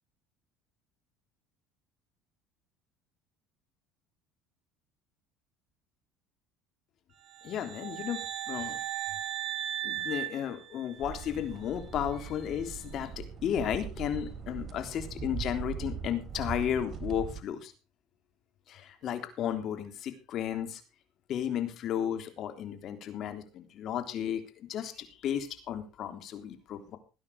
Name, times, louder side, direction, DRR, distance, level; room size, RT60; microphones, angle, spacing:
sound 1, 7.3-11.3, right 11 dB, 60° right, 2.1 m, -37 dB
voice 1, 7.4-8.8 9.8-17.7 18.7-20.8 21.3-24.4 24.7-27.0, left 9 dB, 55° left, 8 dB, 3.4 m, -34 dB
sound 2, 11.0-17.4, right 7 dB, 35° right, 3.4 m, -40 dB
18.5 x 9.9 x 4.9 m, 0.32 s
supercardioid pair, 90°, 0 cm